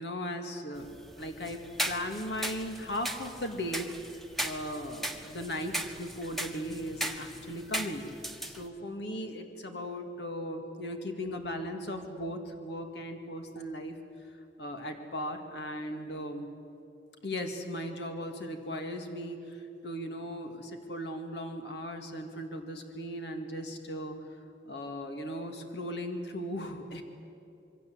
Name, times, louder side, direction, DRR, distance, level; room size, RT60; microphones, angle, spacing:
voice 1, 0.0-4.1 4.4-14.0 14.6-16.5 17.2-24.2 24.7-27.0, equal, 75° left, 4 dB, 2.1 m, -37 dB
sound 1, 0.8-8.7, right 1 dB, ahead, 1.3 m, -38 dB
27.0 x 23.0 x 7.9 m, 2.7 s
head